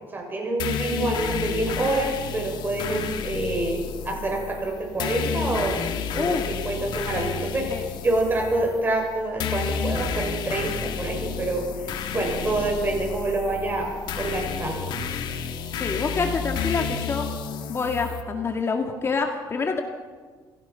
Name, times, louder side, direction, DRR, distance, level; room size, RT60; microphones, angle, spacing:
voice 1, 0.1-5.9 6.1-11.7 12.1-13.9 14.2-14.9, right 2 dB, 25° right, 1 dB, 6.8 m, -27 dB
sound 1, 0.6-18.2, left 6 dB, 65° left, 2.4 m, -31 dB
voice 2, 15.8-17.3 17.7-19.8, left 4 dB, 30° left, 3 dB, 2.2 m, -26 dB
28.0 x 16.0 x 5.8 m, 1.5 s
cardioid pair, 115°, 8 cm